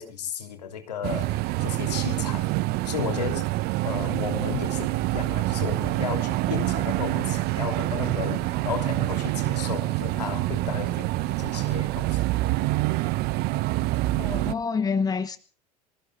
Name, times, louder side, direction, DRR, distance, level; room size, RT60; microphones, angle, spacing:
voice 1, 0.0-2.5 2.8-3.5 3.8-12.2, left 8 dB, 75° left, 3.1 m, -34 dB
sound 1, 1.0-14.5, right 18 dB, 50° right, 0.9 m, -26 dB
voice 2, 14.2-15.4, left 5 dB, 20° left, 1.2 m, -27 dB
25.0 x 14.0 x 3.9 m
figure-of-eight pair, 75°, 21 cm